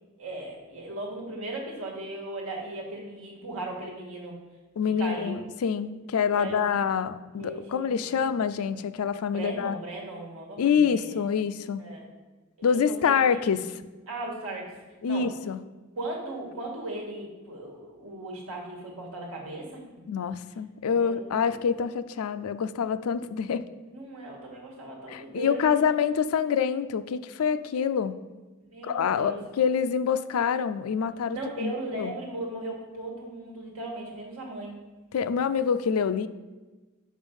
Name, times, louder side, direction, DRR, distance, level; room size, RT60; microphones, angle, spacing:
voice 1, 0.2-4.4 5.0-5.4 6.3-6.7 7.4-8.0 9.3-11.2 11.8-12.1 12.7-13.4 14.1-14.7 15.0-15.3 16.0-19.8 21.0-21.6 23.9-25.7 28.6-29.4 31.3-34.8, right 2 dB, 70° right, -1 dB, 1.7 m, -37 dB
voice 2, 4.8-9.8 10.6-11.8 12.6-13.8 15.0-15.6 20.1-23.7 25.1-28.2 28.8-32.1 35.1-36.3, left 7 dB, 75° left, 12 dB, 0.4 m, -26 dB
5.3 x 5.1 x 5.4 m, 1.2 s
head